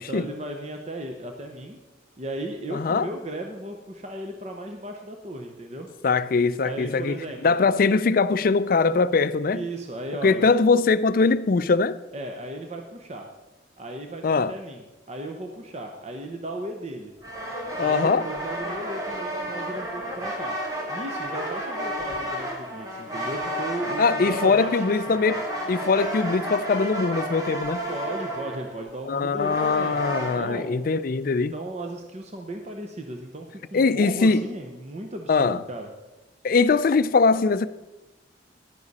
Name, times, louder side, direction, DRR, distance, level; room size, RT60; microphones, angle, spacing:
voice 1, 0.0-1.8 2.2-5.9 6.6-7.8 9.5-10.5 12.1-13.3 13.8-17.1 17.8-20.6 20.9-25.2 27.9-30.9 31.4-35.9, right 1 dB, 35° right, 0.8 m, -36 dB
voice 2, 2.7-3.1 6.0-7.2 7.4-9.6 10.2-12.0 14.2-14.5 17.8-18.2 24.0-27.8 29.1-31.5 33.7-34.4 35.3-35.6 36.4-37.7, left 4 dB, 50° left, 0.4 m, -21 dB
sound 1, 17.2-30.4, right 1 dB, 20° right, 1.8 m, -32 dB
11.0 x 9.8 x 4.1 m
head